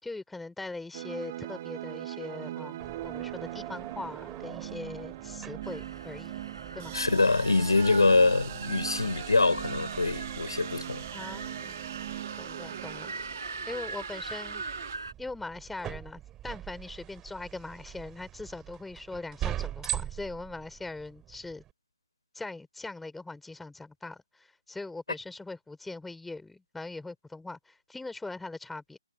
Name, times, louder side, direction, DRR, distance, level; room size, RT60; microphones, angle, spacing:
voice 1, 0.0-6.4 6.7-7.0 11.1-11.8 12.4-13.1 13.7-14.6 15.2-21.6 22.3-29.0, left 3 dB, 5° left, 4.8 m, -41 dB
sound 1, 0.9-15.0, right 13 dB, 30° right, 1.5 m, -40 dB
sound 2, 2.8-21.7, right 12 dB, 15° right, 3.0 m, -43 dB
sound 3, 5.6-15.1, right 3 dB, 70° right, 5.7 m, -42 dB
voice 2, 6.9-11.0, left 3 dB, 70° left, 4.8 m, -24 dB
figure-of-eight pair, 140°, 3 cm